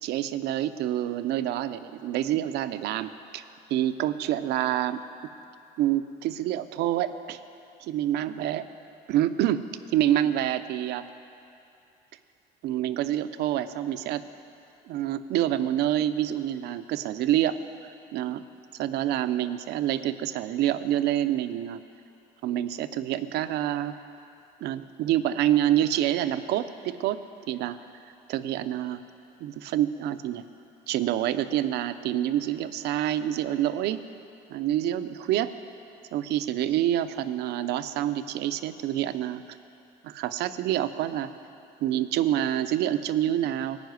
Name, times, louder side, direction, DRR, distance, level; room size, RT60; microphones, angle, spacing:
voice 1, 0.0-3.4 3.7-5.0 5.8-7.4 7.8-8.7 9.1-11.0 12.6-14.3 14.9-17.6 18.1-18.4 18.8-21.8 22.4-23.9 24.6-27.2 27.5-27.8 28.3-29.0 29.4-30.4 30.9-34.0 34.5-35.5 36.1-39.4 40.0-41.3 41.8-43.8, right 12 dB, 80° right, 11 dB, 0.5 m, -27 dB
14.5 x 5.5 x 9.3 m, 2.7 s
cardioid pair, 110°, 17 cm